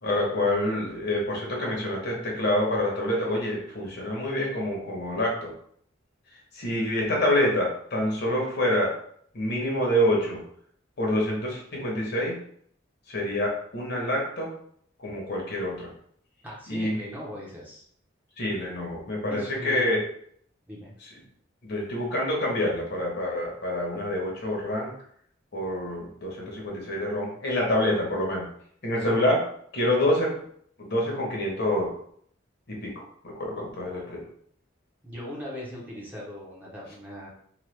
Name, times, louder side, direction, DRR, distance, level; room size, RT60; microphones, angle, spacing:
voice 1, 0.0-5.5 6.5-8.9 9.3-10.4 11.0-12.4 13.1-14.5 15.0-15.9 16.7-17.1 18.4-20.0 21.0-21.1 21.6-24.9 25.5-28.5 28.8-29.5 29.7-30.4 30.8-31.9 32.7-34.3, left 1 dB, 55° left, -1 dB, 0.9 m, -27 dB
voice 2, 16.4-17.9 19.3-20.0 20.7-20.9 33.5-33.6 35.0-37.3, equal, 10° right, -6 dB, 0.8 m, -39 dB
2.9 x 2.2 x 3.2 m, 0.63 s
head